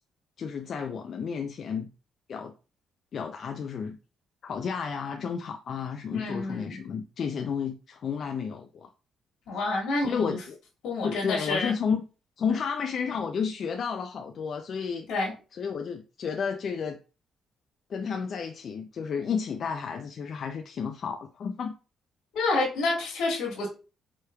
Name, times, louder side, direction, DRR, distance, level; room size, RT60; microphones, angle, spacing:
voice 1, 0.4-1.9 2.3-2.5 3.1-4.0 4.4-8.9 10.0-10.6 11.0-12.0 12.4-15.1 15.5-17.0 17.9-21.7, left 6 dB, 55° left, 0.4 m, -32 dB
voice 2, 6.1-6.8 9.5-10.4 10.8-11.7 15.1-15.3 22.3-23.7, left 2 dB, 85° left, 1.6 m, -28 dB
4.9 x 3.1 x 2.3 m
cardioid pair, 90°, 0 cm